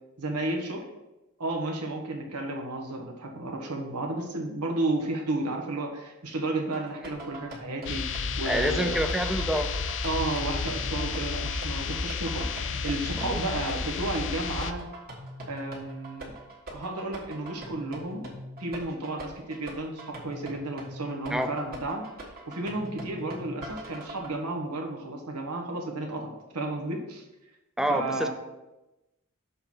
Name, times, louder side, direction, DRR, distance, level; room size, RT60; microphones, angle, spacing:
voice 1, 0.2-0.8 1.4-9.0 10.0-14.9 15.5-16.3 16.7-18.3 18.6-22.0 22.5-27.2 27.9-28.3, right 2 dB, 90° right, 1 dB, 1.3 m, -32 dB
sound 1, 6.7-24.3, right 1 dB, 40° right, 1.6 m, -43 dB
sound 2, 7.8-14.7, left 5 dB, 55° left, 0.5 m, -32 dB
voice 2, 8.4-9.7 13.2-13.4 21.3-21.5 27.8-28.3, right 1 dB, ahead, 7 dB, 0.4 m, -27 dB
6.8 x 3.8 x 5.9 m, 0.99 s
head